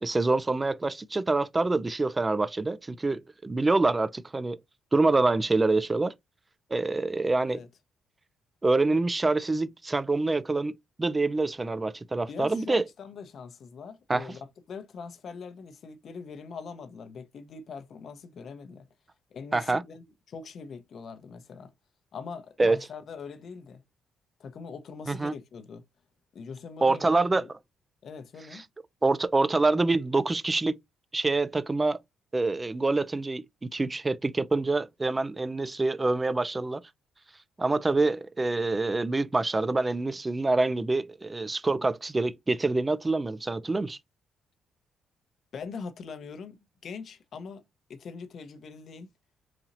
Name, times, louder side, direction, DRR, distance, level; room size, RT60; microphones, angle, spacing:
voice 1, 0.0-4.6 4.9-6.1 6.7-7.6 8.6-10.7 11.0-12.8 14.1-14.4 19.5-19.8 22.6-22.8 25.1-25.3 26.8-27.4 28.5-28.6 29.0-30.8 31.1-32.0 32.3-33.4 33.7-36.8 37.6-44.0, right 3 dB, 20° right, 0.4 m, -26 dB
voice 2, 12.3-18.9 19.3-21.7 22.1-23.8 24.4-25.8 26.3-27.5 28.0-28.6 45.5-47.6 47.9-49.1, left 5 dB, 60° left, 0.7 m, -42 dB
4.1 x 2.8 x 2.5 m
cardioid pair, 90°, 0 cm